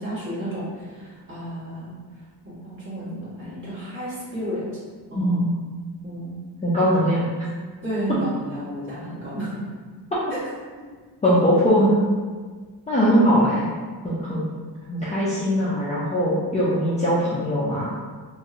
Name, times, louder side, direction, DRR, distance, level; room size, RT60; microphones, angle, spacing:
voice 1, 0.0-4.8 5.1-5.4 6.0-6.4 7.8-9.6 10.3-10.4 10.8-10.9 13.3-13.5, right 1 dB, 30° right, -9 dB, 1.3 m, -32 dB
voice 2, 5.2-5.5 6.6-7.2 11.2-11.9 12.9-13.6 14.0-14.4 14.9-17.9, equal, 15° left, -9 dB, 0.4 m, -20 dB
2.9 x 2.6 x 2.4 m, 1.5 s
cardioid pair, 130°, 42 cm